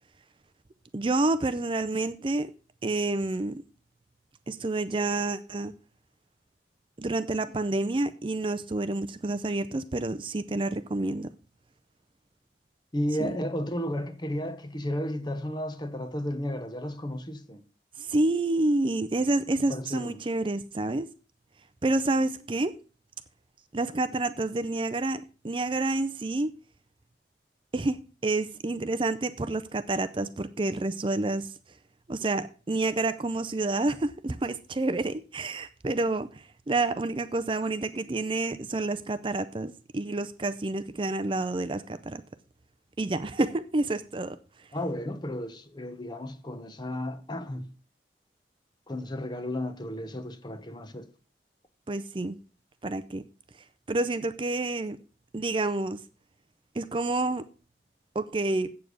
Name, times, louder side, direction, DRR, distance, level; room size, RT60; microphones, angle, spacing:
voice 1, 0.9-2.5 2.8-3.6 4.5-5.7 7.0-11.3 13.2-13.3 18.0-21.1 21.8-22.7 23.7-26.5 27.7-31.5 32.1-42.2 43.0-44.4 51.9-52.4 52.8-53.2 53.9-55.0 55.3-56.0 56.7-57.4 58.1-58.7, right 2 dB, 30° right, 0.5 m, -29 dB
voice 2, 12.9-17.6 19.7-20.2 44.7-47.7 48.9-51.1, left 1 dB, 25° left, 0.9 m, -33 dB
8.2 x 7.2 x 6.1 m
head